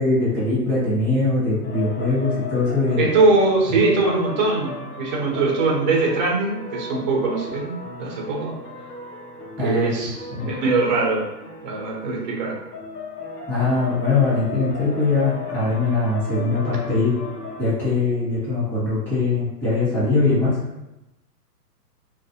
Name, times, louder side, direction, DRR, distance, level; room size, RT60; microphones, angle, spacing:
voice 1, 0.0-3.0 9.6-9.9 10.3-10.5 13.5-17.1 17.6-20.6, left 3 dB, 5° left, -12 dB, 0.9 m, -21 dB
sound 1, 1.6-17.6, left 4 dB, 70° left, 0.9 m, -36 dB
voice 2, 3.0-8.6 9.6-11.3 11.6-12.6, right 3 dB, 30° right, -2 dB, 0.4 m, -21 dB
2.4 x 2.0 x 2.6 m, 0.95 s
hypercardioid pair, 135°, 48 cm